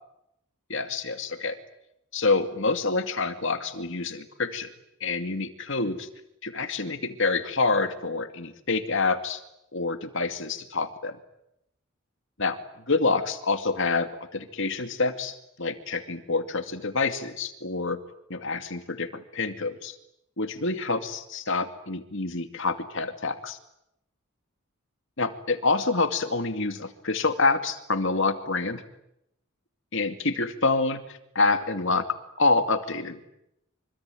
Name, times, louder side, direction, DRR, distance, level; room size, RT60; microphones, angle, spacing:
voice 1, 0.7-1.6 2.1-4.7 5.0-6.1 6.4-9.4 9.7-11.2 12.4-12.6 12.9-18.0 18.3-20.0 20.4-23.6 25.2-28.8 29.9-32.1 32.4-33.2, left 3 dB, 60° left, 8 dB, 2.4 m, -27 dB
25.5 x 25.0 x 9.2 m, 0.82 s
head